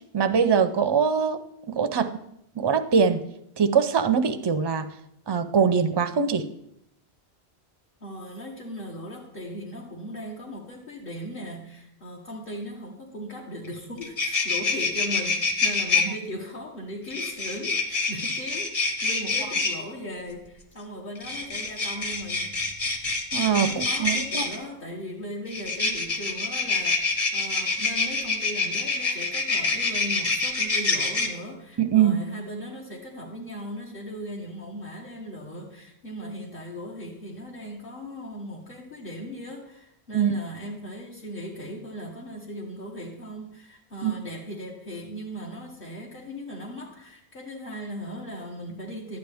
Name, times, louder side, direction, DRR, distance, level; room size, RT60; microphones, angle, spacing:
voice 1, 0.1-1.4 1.7-2.1 2.6-3.2 3.6-4.9 5.3-6.4 23.3-24.5 31.8-32.2 40.1-40.3 44.0-44.1, right 6 dB, 35° right, 9 dB, 0.4 m, -22 dB
voice 2, 8.0-22.5 23.6-49.2, equal, 55° left, -3 dB, 1.4 m, -38 dB
sound 1, 13.6-13.7 14.0-16.0 17.1-19.7 21.2-24.6 25.5-31.3, left 4 dB, 35° left, 1.2 m, -26 dB
12.0 x 9.3 x 3.4 m, 0.76 s
omnidirectional pair, 1.1 m